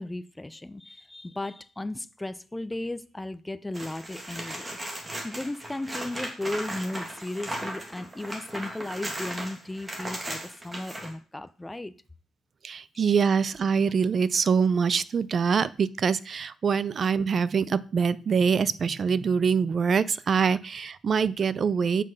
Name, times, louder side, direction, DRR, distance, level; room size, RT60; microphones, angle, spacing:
voice 1, 0.0-4.8 5.2-11.9, left 2 dB, 10° left, 0.5 m, -35 dB
sound 1, 3.7-11.1 13.8-13.9, right 1 dB, 20° right, 2.2 m, -37 dB
voice 2, 12.6-22.0, right 6 dB, 40° right, 0.5 m, -24 dB
7.6 x 5.8 x 6.5 m
cardioid pair, 110°, 0 cm